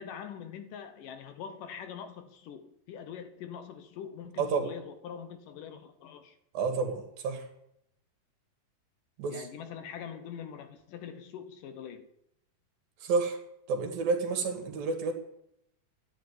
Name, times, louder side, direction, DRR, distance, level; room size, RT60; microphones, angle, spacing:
voice 1, 0.0-6.4 9.2-12.1, left 8 dB, 70° left, 10 dB, 2.4 m, -43 dB
voice 2, 4.4-4.7 6.5-7.5 9.2-9.5 13.0-13.4 13.7-15.1, right 4 dB, 70° right, 7 dB, 3.9 m, -30 dB
13.0 x 10.5 x 9.7 m, 0.78 s
omnidirectional pair, 4.3 m